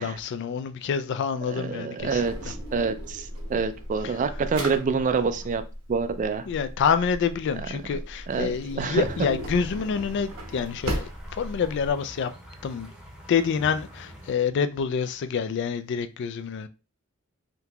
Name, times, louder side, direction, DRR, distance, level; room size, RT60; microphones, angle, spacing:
voice 1, 0.0-2.2 4.0-4.1 6.5-12.3 12.6-12.9 13.3-16.7, left 6 dB, 55° left, 0.3 m, -27 dB
voice 2, 1.5-5.6 5.9-6.5 8.3-9.1, right 5 dB, 35° right, 0.3 m, -27 dB
Drawer open or close, 2.0-11.9, equal, 70° right, 0.9 m, -37 dB
sound 1, 8.9-14.3, equal, 5° right, 0.7 m, -45 dB
3.7 x 2.8 x 2.3 m
head